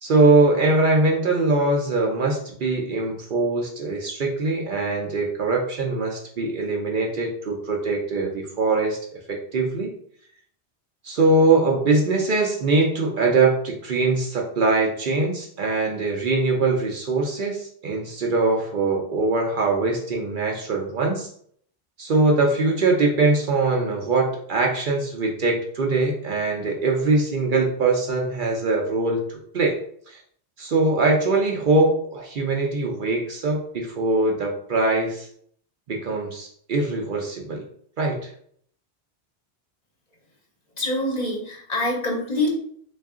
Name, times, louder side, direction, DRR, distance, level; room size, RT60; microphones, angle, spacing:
voice 1, 0.0-9.0 9.3-9.9 11.0-21.3 22.0-29.8 30.1-30.2 30.6-35.3 35.9-37.6 38.0-38.3, right 3 dB, 55° right, 0 dB, 0.7 m, -22 dB
voice 2, 40.7-42.5, left 1 dB, 40° left, -2 dB, 0.9 m, -25 dB
3.5 x 2.4 x 3.6 m, 0.63 s
omnidirectional pair, 1.1 m